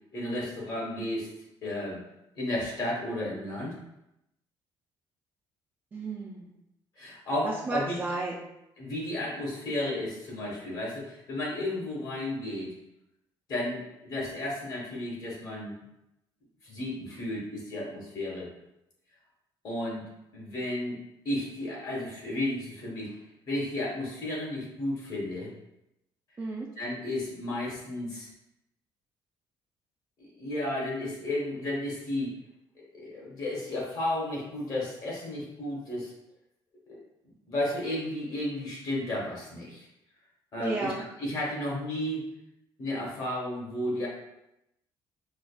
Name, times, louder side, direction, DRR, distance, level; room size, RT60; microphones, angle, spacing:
voice 1, 0.1-1.3 1.6-2.0 2.3-3.8 7.0-8.0 8.8-12.7 13.5-15.7 16.6-18.5 19.6-20.0 20.3-21.0 21.2-25.5 26.8-28.3 30.4-32.3 32.7-36.1 36.9-37.0 37.5-39.9 40.5-42.3 42.8-44.1, left 1 dB, 45° left, -4 dB, 1.2 m, -33 dB
voice 2, 5.9-6.5 7.4-8.4 26.4-26.7 40.6-41.0, right 3 dB, 20° right, -3 dB, 0.4 m, -33 dB
4.8 x 2.3 x 2.3 m, 0.86 s
cardioid pair, 155°, 9 cm